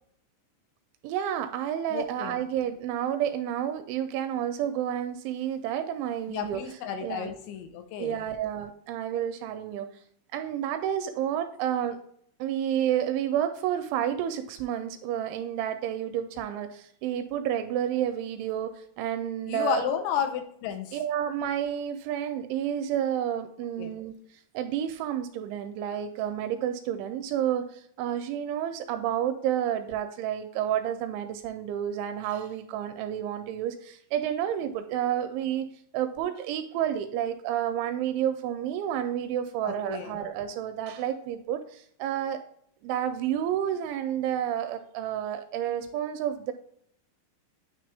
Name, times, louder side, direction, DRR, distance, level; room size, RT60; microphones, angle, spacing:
voice 1, 1.0-6.6 7.0-7.3 8.0-9.9 10.3-12.0 12.4-19.8 20.9-24.1 24.5-35.7 35.9-42.4 42.8-46.5, right 10 dB, 85° right, 8 dB, 2.8 m, -30 dB
voice 2, 1.9-2.4 6.3-8.2 19.5-21.0 23.8-23.9 39.6-40.2, left 8 dB, 80° left, 6 dB, 2.8 m, -32 dB
9.4 x 3.2 x 3.3 m, 0.66 s
omnidirectional pair, 5.6 m